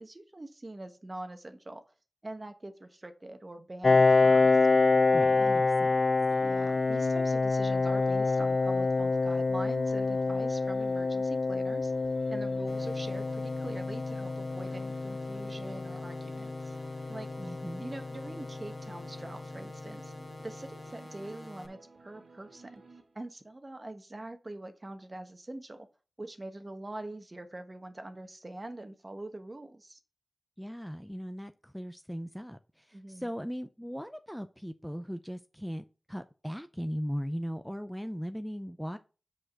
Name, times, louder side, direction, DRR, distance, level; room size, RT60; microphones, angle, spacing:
voice 1, 0.0-1.8 2.2-4.7 5.4-5.7 6.4-11.9 12.3-16.5 17.1-20.1 20.4-22.8 23.1-25.9 26.2-30.0 32.9-33.3, right 1 dB, 35° right, 1.3 m, -44 dB
Piano, 3.8-19.2, left 3 dB, 60° left, 0.3 m, -27 dB
voice 2, 5.1-6.0 17.4-17.8 30.6-39.0, equal, ahead, 0.6 m, -38 dB
sound 1, 6.3-23.5, right 3 dB, 75° right, 1.3 m, -56 dB
sound 2, 12.7-21.7, left 1 dB, 35° left, 1.8 m, -47 dB
6.5 x 4.9 x 6.0 m
cardioid pair, 45°, 0 cm